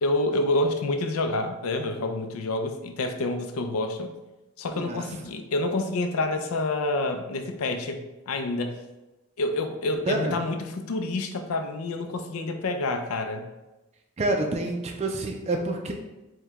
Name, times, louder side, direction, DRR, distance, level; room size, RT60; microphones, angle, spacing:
voice 1, 0.0-4.1 4.6-8.0 8.3-8.8 9.4-13.5, left 2 dB, 80° left, 6 dB, 0.4 m, -28 dB
voice 2, 14.2-15.9, right 2 dB, 30° right, 2 dB, 0.3 m, -27 dB
4.6 x 2.2 x 3.4 m, 1.0 s
head